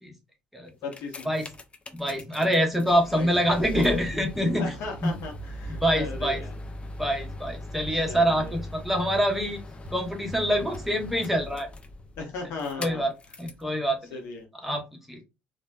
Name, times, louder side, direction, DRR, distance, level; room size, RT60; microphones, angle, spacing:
sound 1, 0.7-13.7 14.4-14.5, left 1 dB, 20° left, 0.4 m, -40 dB
voice 1, 0.8-1.3 3.1-3.6 4.6-6.6 7.9-8.5 12.2-13.1 14.1-14.5, left 4 dB, 55° left, 2 dB, 0.7 m, -37 dB
voice 2, 1.9-4.7 5.0-5.1 5.8-6.4 7.0-9.6 9.9-11.7 12.8-13.1 13.4-14.0 14.6-15.2, equal, 5° right, 2 dB, 0.8 m, -25 dB
sound 2, 3.3-4.6 5.1-6.5 7.0-7.4 7.9-10.0 10.3-10.9, left 1 dB, 45° right, 0.5 m, -43 dB
3.1 x 2.1 x 2.2 m, 0.26 s
figure-of-eight pair, 55°, 5 cm